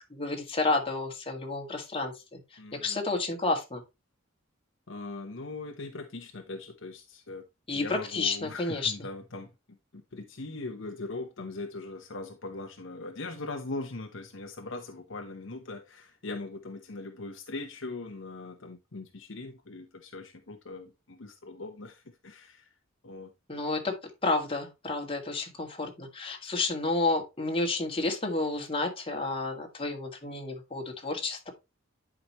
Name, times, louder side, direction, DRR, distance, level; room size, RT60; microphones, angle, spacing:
voice 1, 0.0-2.4 2.7-3.8 7.7-8.9 23.5-23.9 24.2-31.5, left 3 dB, 25° left, 2.0 m, -30 dB
voice 2, 2.6-3.0 4.9-9.5 9.9-22.7 23.0-23.3, left 3 dB, 65° left, 1.0 m, -40 dB
11.0 x 5.1 x 3.0 m
head